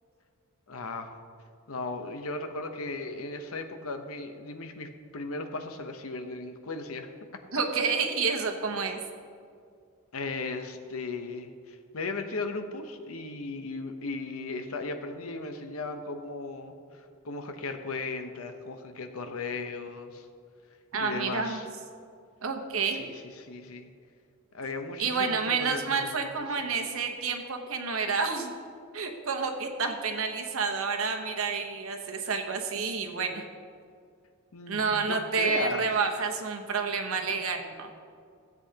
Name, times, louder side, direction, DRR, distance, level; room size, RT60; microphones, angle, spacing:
voice 1, 0.7-1.2 1.7-7.1 10.1-20.3 21.0-21.7 23.0-23.9 24.5-26.5 34.5-35.8, left 3 dB, 80° left, 7 dB, 0.8 m, -36 dB
voice 2, 7.5-9.0 20.9-21.6 22.4-23.1 25.0-28.5 28.9-33.4 34.7-37.9, right 5 dB, 70° right, 4 dB, 1.0 m, -29 dB
16.0 x 8.0 x 2.9 m, 2.2 s
head